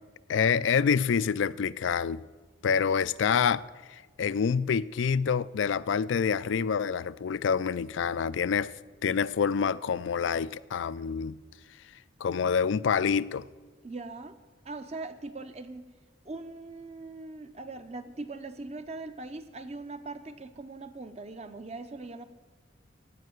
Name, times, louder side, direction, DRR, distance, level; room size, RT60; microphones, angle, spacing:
voice 1, 0.3-2.2 2.6-3.6 3.9-8.7 9.0-11.4 12.2-13.5, left 6 dB, 75° left, 0.4 m, -27 dB
voice 2, 13.8-14.4 14.6-15.9 16.2-22.2, right 3 dB, 35° right, 0.7 m, -41 dB
16.0 x 5.7 x 9.3 m
head